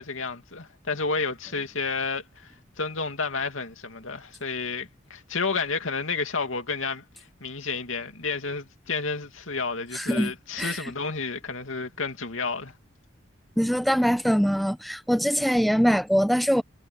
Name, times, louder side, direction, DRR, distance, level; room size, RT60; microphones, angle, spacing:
voice 1, 0.0-12.7, left 4 dB, 75° left, 2.6 m, -31 dB
voice 2, 9.9-10.3 10.6-10.9 13.6-16.6, equal, ahead, 1.0 m, -23 dB
head